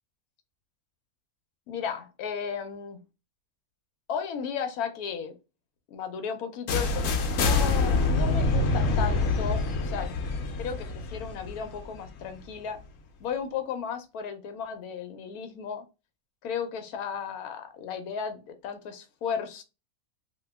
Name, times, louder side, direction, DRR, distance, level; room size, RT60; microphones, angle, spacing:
voice 1, 1.7-3.0 4.1-5.4 5.9-7.0 7.3-10.1 10.6-12.8 13.2-15.8 16.4-19.6, left 7 dB, 90° left, 1.1 m, -34 dB
sound 1, 6.7-12.5, left 3 dB, 70° left, 1.0 m, -26 dB
2.9 x 2.5 x 3.4 m
omnidirectional pair, 1.5 m